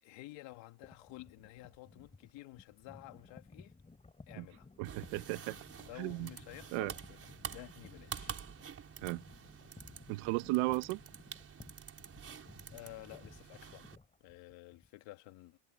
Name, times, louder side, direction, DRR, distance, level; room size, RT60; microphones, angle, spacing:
voice 1, 0.0-3.7 4.3-4.7 5.8-8.4 12.7-13.9 14.2-15.6, left 18 dB, 70° left, 2.2 m, -52 dB
sound 1, 0.8-14.9, left 3 dB, 15° left, 4.9 m, -57 dB
sound 2, 4.8-14.0, right 7 dB, 30° right, 4.9 m, -48 dB
voice 2, 4.8-5.6 6.0-6.3 6.7-6.9 9.0-9.2 10.1-11.0, right 22 dB, 85° right, 1.2 m, -34 dB
cardioid pair, 135°, 46 cm